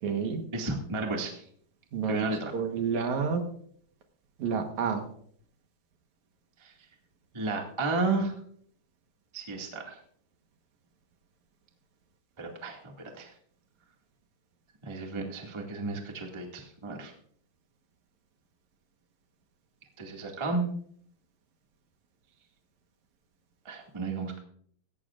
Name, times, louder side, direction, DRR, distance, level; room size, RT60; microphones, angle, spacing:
voice 1, 0.0-0.4 1.9-3.4 4.4-5.0, right 6 dB, 60° right, 5 dB, 2.2 m, -29 dB
voice 2, 0.5-1.4 2.1-2.5 6.6-6.7 7.3-8.3 9.3-10.0 12.4-13.3 14.8-17.1 20.0-20.6 23.6-24.4, right 3 dB, 45° right, 1 dB, 0.3 m, -33 dB
17.5 x 16.0 x 2.5 m, 0.62 s
omnidirectional pair, 4.5 m